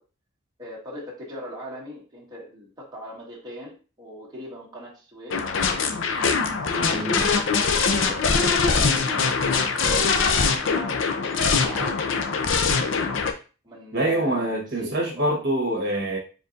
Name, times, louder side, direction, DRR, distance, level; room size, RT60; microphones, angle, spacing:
voice 1, 0.6-5.4 6.1-6.4 6.7-10.1 10.5-11.0 11.5-12.5 13.6-15.3, equal, 20° right, -4 dB, 1.4 m, -39 dB
sound 1, 5.3-13.3, left 5 dB, 70° left, 0.6 m, -22 dB
voice 2, 13.9-16.2, right 1 dB, 55° right, -1 dB, 1.2 m, -25 dB
4.4 x 3.8 x 2.5 m, 0.35 s
head